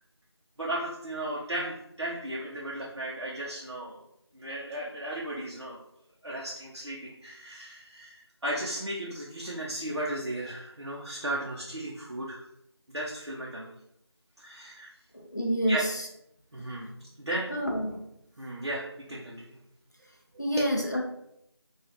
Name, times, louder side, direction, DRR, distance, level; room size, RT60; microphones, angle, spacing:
voice 1, 0.6-4.0 4.3-5.8 6.2-12.4 12.9-13.7 14.4-14.9 15.7-15.8 16.5-17.5 18.4-19.6 20.6-20.7, right 1 dB, 75° right, -4 dB, 0.7 m, -35 dB
voice 2, 15.1-16.1 17.5-18.0 20.4-21.0, equal, 40° left, 0 dB, 0.5 m, -28 dB
3.1 x 2.3 x 2.5 m, 0.78 s
figure-of-eight pair, 175°, 14 cm